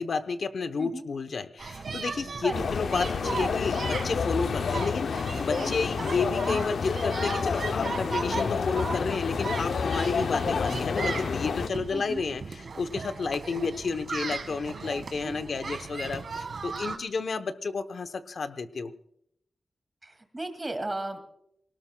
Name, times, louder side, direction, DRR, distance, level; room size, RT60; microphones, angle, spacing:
voice 1, 0.0-18.9, left 4 dB, 70° left, 10 dB, 0.8 m, -31 dB
sound 1, 1.6-17.0, right 4 dB, 65° right, 1.6 m, -37 dB
sound 2, 2.5-11.7, left 5 dB, 90° left, 0.5 m, -29 dB
voice 2, 11.9-12.3 15.2-15.5 20.0-21.2, right 2 dB, 20° right, 6 dB, 2.2 m, -35 dB
23.5 x 18.5 x 2.2 m, 0.71 s
wide cardioid pair, 140°, 0 cm